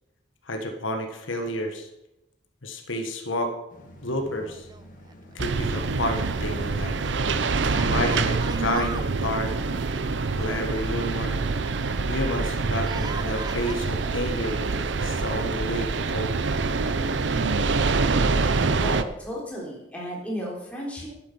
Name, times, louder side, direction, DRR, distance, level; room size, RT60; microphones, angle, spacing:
voice 1, 0.5-1.9 2.6-3.5 4.0-4.7 5.3-7.0 7.7-9.5 10.4-11.4 12.1-16.3, left 1 dB, 80° left, 4 dB, 1.5 m, -30 dB
sound 1, 3.7-11.8, equal, 45° left, 1.9 m, -48 dB
Yell, 4.5-5.3 5.6-5.7 7.7-9.1 10.4-11.8 12.8-13.7, right 4 dB, 20° right, 0.5 m, -39 dB
sound 2, 5.4-19.0, right 4 dB, 65° right, 0.6 m, -26 dB
voice 2, 18.8-21.1, equal, 5° left, -4 dB, 3.4 m, -34 dB
12.0 x 9.1 x 5.5 m, 0.90 s
head